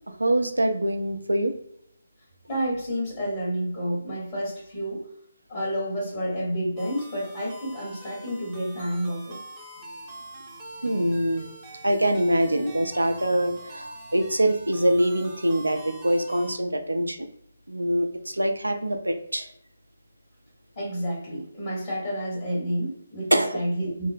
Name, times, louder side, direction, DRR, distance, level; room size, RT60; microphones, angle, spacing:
voice 1, 0.2-1.5 10.8-11.4 11.8-17.2 17.7-19.5 23.3-23.6, right 1 dB, 85° right, 5 dB, 0.4 m, -24 dB
voice 2, 2.5-5.0 5.5-9.4 20.7-24.1, equal, 40° left, -6 dB, 1.3 m, -30 dB
sound 1, 6.8-16.6, right 1 dB, 15° right, 0.6 m, -44 dB
2.9 x 2.0 x 2.6 m, 0.70 s
figure-of-eight pair, 145°, 0 cm